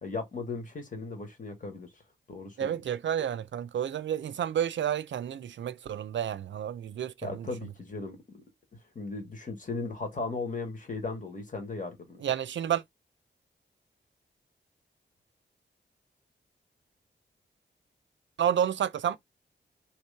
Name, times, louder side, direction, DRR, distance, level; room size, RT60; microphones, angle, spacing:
voice 1, 0.0-1.9 2.3-2.8 7.2-8.4 8.9-12.2, left 3 dB, 45° left, 1.6 m, -37 dB
voice 2, 2.6-7.5 12.2-12.8 18.4-19.2, right 9 dB, 75° right, 0.4 m, -30 dB
3.1 x 3.0 x 3.3 m
cardioid pair, 70°, 19 cm